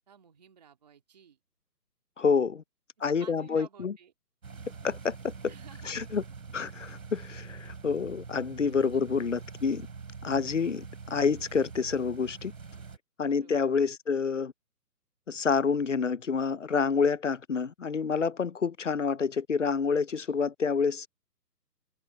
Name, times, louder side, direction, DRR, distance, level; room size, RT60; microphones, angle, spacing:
voice 1, 0.0-1.4 3.0-4.1 5.4-6.2 8.9-9.0 10.5-10.8 13.2-13.5, right 8 dB, 25° right, 2.6 m, -54 dB
voice 2, 2.2-2.6 3.0-3.9 4.8-5.3 5.9-6.2 6.5-9.9 10.2-12.5 13.2-14.5 15.3-21.1, left 5 dB, 50° left, 0.8 m, -28 dB
sound 1, 4.4-13.0, right 5 dB, 55° right, 4.2 m, -44 dB
hypercardioid pair, 180°, 48 cm